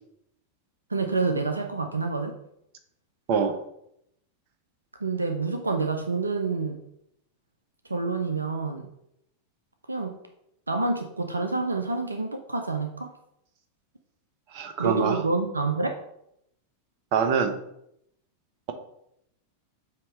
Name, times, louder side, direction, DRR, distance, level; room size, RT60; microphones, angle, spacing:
voice 1, 0.9-2.3 5.0-6.8 7.9-8.9 9.9-10.1 10.7-13.1 14.8-15.9, right 3 dB, 80° right, 5 dB, 0.5 m, -27 dB
voice 2, 14.5-15.2 17.1-17.6, right 6 dB, 45° right, 6 dB, 0.9 m, -24 dB
7.5 x 2.9 x 4.5 m, 0.76 s
figure-of-eight pair, 90°, 0 cm